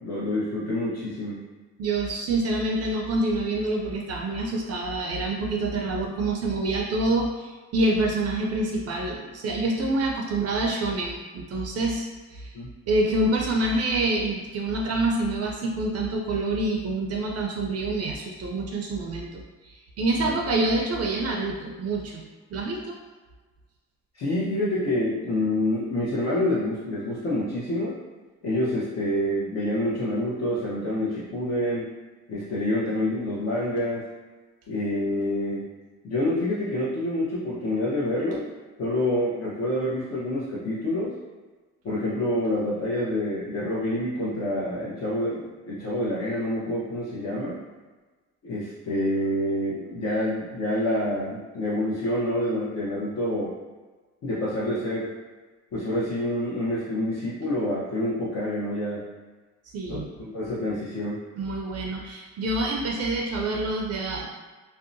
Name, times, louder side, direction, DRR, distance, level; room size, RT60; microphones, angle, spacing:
voice 1, 0.0-1.4 12.5-12.7 20.2-20.3 24.1-27.9 28.4-31.9 32.3-34.1 34.7-35.7 36.0-38.5 38.8-41.1 41.8-47.6 48.4-53.5 54.2-55.1 55.7-59.0 59.9-61.2, left 1 dB, 60° left, -8 dB, 0.8 m, -27 dB
voice 2, 1.8-12.5 12.9-22.2 22.5-23.0 59.7-60.1 61.4-64.3, right 2 dB, 55° right, 0 dB, 0.4 m, -27 dB
2.7 x 2.1 x 2.5 m, 1.3 s
cardioid pair, 90°, 30 cm